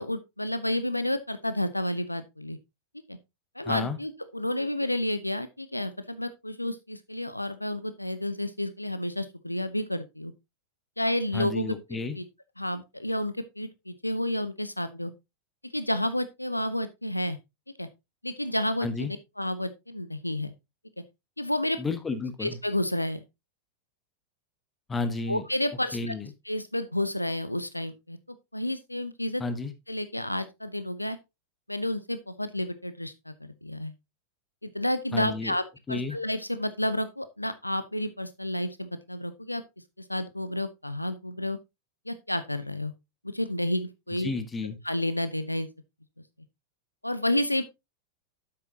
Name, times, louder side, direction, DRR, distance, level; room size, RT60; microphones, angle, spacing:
voice 1, 0.0-2.6 3.1-3.2 3.6-10.3 11.0-11.8 12.1-12.2 12.6-15.1 15.6-17.4 17.8-17.9 18.2-19.1 19.4-20.5 21.4-21.8 22.4-23.2 25.3-26.1 26.5-29.4 29.9-31.2 31.7-33.9 34.6-35.6 35.9-39.6 40.1-41.6 42.1-42.9 43.2-44.3 44.8-45.7 47.0-47.6, left 1 dB, 85° left, 0.7 m, -30 dB
voice 2, 3.6-4.0 11.3-12.2 18.8-19.1 21.8-22.6 24.9-25.4 25.9-26.3 29.4-29.7 35.1-35.5 35.9-36.2 44.1-44.8, left 4 dB, 15° left, 1.3 m, -31 dB
9.7 x 7.8 x 2.8 m
figure-of-eight pair, 90°, 0 cm